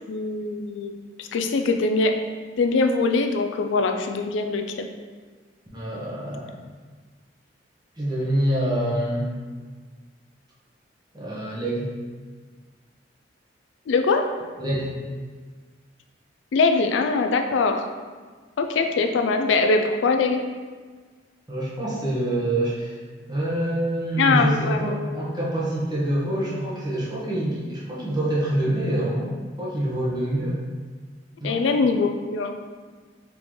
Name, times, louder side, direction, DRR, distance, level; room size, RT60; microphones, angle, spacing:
voice 1, 0.1-2.2 2.6-4.9 13.9-14.3 16.5-17.9 18.6-20.4 24.2-24.8 31.4-32.5, left 3 dB, 85° left, 6 dB, 0.4 m, -22 dB
voice 2, 5.7-6.5 8.0-9.2 11.1-11.9 14.6-14.9 21.5-23.0 23.3-29.3 29.6-30.6 31.4-31.6, right 1 dB, 25° right, -7 dB, 1.0 m, -26 dB
3.7 x 3.7 x 3.1 m, 1.5 s
head